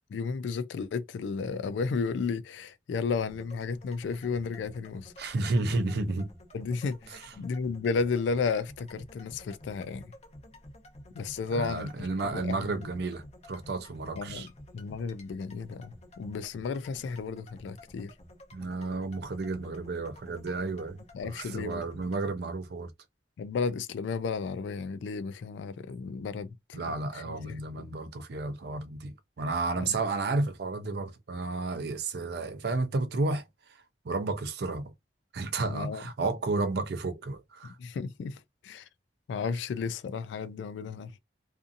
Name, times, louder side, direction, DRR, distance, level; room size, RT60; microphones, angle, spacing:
voice 1, 0.1-5.1 6.5-10.1 11.2-12.1 12.3-12.7 14.2-14.4 14.7-18.1 21.1-21.8 23.4-26.8 27.1-27.6 29.8-29.9 35.7-36.0 37.6-38.4 38.6-38.8 39.3-41.2, left 5 dB, 85° left, 0.3 m, -33 dB
sound 1, 3.1-22.2, left 1 dB, 40° left, 0.7 m, -52 dB
voice 2, 5.2-6.3 7.1-7.3 11.5-14.5 18.5-22.9 26.7-34.9 35.3-37.8, right 3 dB, 65° right, 0.5 m, -32 dB
2.6 x 2.5 x 2.5 m
head